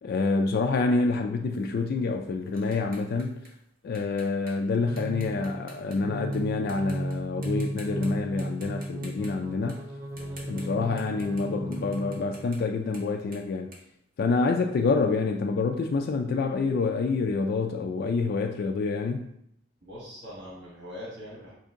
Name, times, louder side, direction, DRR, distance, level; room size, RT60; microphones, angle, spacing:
voice 1, 0.0-3.4 3.8-9.8 10.5-13.7 14.2-19.3, left 4 dB, 50° left, 4 dB, 0.3 m, -27 dB
sound 1, 1.5-6.4 6.7-7.1 7.4-8.1 8.4-14.7, right 1 dB, 45° right, 1.2 m, -51 dB
sound 2, 4.7-12.7, right 1 dB, 15° right, 0.4 m, -35 dB
voice 2, 10.1-10.4 19.8-21.5, equal, 65° right, -6 dB, 1.3 m, -42 dB
5.0 x 2.7 x 3.6 m, 0.76 s
head